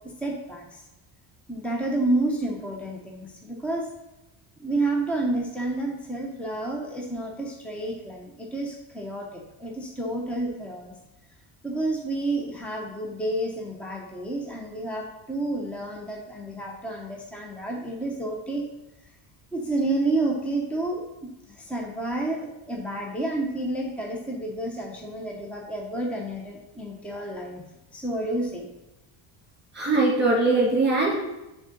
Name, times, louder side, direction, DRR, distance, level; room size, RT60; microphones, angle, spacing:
voice 1, 0.2-0.8 1.5-3.9 4.6-10.9 11.6-18.6 19.5-21.0 21.5-27.6 27.9-28.7, right 2 dB, 5° left, -1 dB, 0.8 m, -30 dB
voice 2, 29.7-31.1, right 2 dB, 20° right, -4 dB, 2.6 m, -21 dB
7.4 x 3.8 x 6.6 m, 0.96 s
cardioid pair, 150°, 47 cm